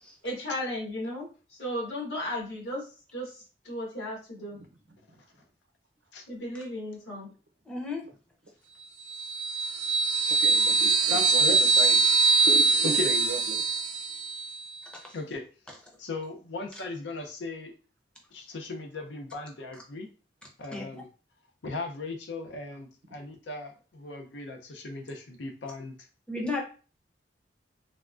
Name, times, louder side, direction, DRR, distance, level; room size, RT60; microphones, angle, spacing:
voice 1, 0.2-2.8 3.1-4.6 6.3-7.3, left 1 dB, 65° left, -5 dB, 1.5 m, -35 dB
voice 2, 7.7-8.0 14.9-15.1 20.7-20.8 26.3-26.6, left 3 dB, 5° left, -1 dB, 0.5 m, -33 dB
sound 1, 9.1-14.6, right 4 dB, 45° right, 0.4 m, -23 dB
voice 3, 10.4-12.1 12.4-13.6, right 1 dB, 85° right, 4 dB, 0.7 m, -36 dB
voice 4, 11.1-11.6 12.8-13.1 15.1-15.4 16.0-17.7 18.3-20.1 20.6-21.1 21.6-26.0, left 3 dB, 85° left, 3 dB, 0.6 m, -37 dB
3.5 x 2.2 x 2.4 m, 0.36 s
head